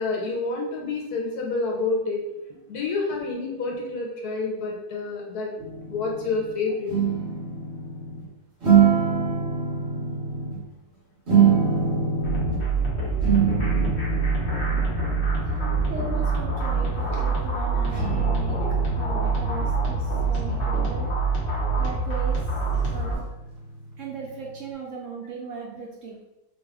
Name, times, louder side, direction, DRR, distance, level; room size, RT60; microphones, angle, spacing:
voice 1, 0.0-2.2 2.7-5.5 5.9-6.9 18.3-18.4 18.8-18.9, left 3 dB, 70° left, -1 dB, 1.2 m, -28 dB
sound 1, 5.6-6.5 6.9-8.2 8.6-10.6 11.3-12.7 13.2-17.2 17.9-24.4, right 6 dB, 45° right, 1.1 m, -26 dB
voice 2, 11.6-12.2 15.7-18.6 18.9-21.1 21.8-22.4 22.9-23.3 24.0-26.2, right 5 dB, 75° right, -2 dB, 0.7 m, -38 dB
sound 2, 12.2-23.1, right 4 dB, 45° left, 1.0 m, -25 dB
3.2 x 2.4 x 3.4 m, 0.94 s
omnidirectional pair, 1.9 m